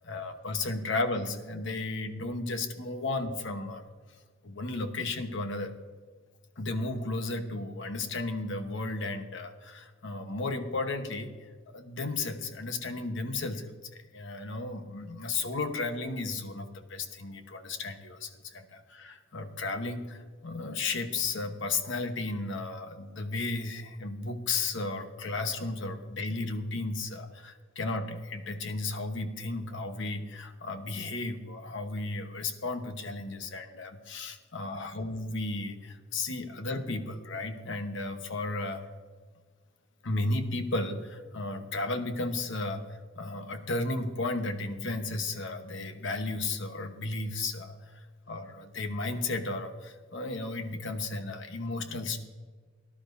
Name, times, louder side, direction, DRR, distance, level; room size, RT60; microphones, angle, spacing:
voice 1, 0.0-3.8 4.4-5.7 6.6-11.3 11.7-13.7 14.1-38.9 40.0-42.8 43.2-47.8 48.3-52.2, left 3 dB, 65° left, 7 dB, 1.1 m, -34 dB
18.0 x 11.5 x 2.6 m, 1.5 s
head